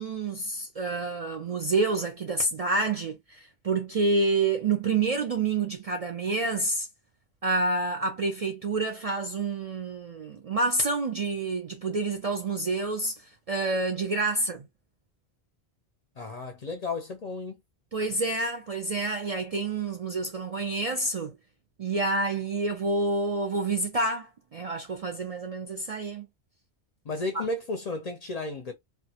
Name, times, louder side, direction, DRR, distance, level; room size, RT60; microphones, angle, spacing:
voice 1, 0.0-6.9 7.4-13.2 13.5-14.7 17.9-21.4 21.8-26.3, right 3 dB, 50° right, 0.4 m, -28 dB
voice 2, 16.2-17.6 27.0-28.7, left 2 dB, 50° left, 0.5 m, -33 dB
2.3 x 2.1 x 2.7 m
omnidirectional pair, 1.1 m